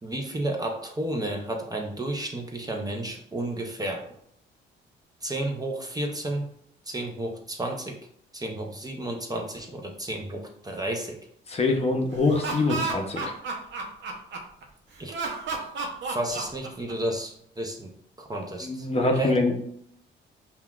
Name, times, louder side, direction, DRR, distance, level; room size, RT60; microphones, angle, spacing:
voice 1, 0.0-4.1 5.2-6.5 6.9-8.0 8.3-11.2 15.0-15.2 16.0-17.9 18.2-19.4, right 1 dB, 20° right, 1 dB, 0.6 m, -32 dB
voice 2, 11.5-13.3 18.6-19.6, left 3 dB, 30° left, 3 dB, 0.7 m, -24 dB
Laughter, 12.1-14.6 15.1-17.1, right 3 dB, 65° right, 0.7 m, -32 dB
5.5 x 2.3 x 2.3 m, 0.67 s
cardioid pair, 90°, 20 cm